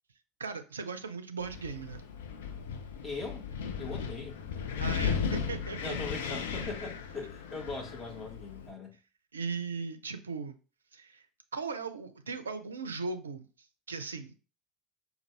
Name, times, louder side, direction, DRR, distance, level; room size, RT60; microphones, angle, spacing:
voice 1, 0.4-2.0 4.8-6.0 9.3-10.6 10.9-11.2 11.5-13.5 13.9-14.3, right 4 dB, 85° right, 0.4 m, -38 dB
Wind, 1.4-8.7, left 6 dB, 75° left, 0.5 m, -36 dB
voice 2, 3.0-3.5 3.8-4.5 4.9-5.2 5.8-8.9, left 3 dB, 25° left, 1.6 m, -40 dB
5.1 x 2.4 x 3.3 m
hypercardioid pair, 70°, 0 cm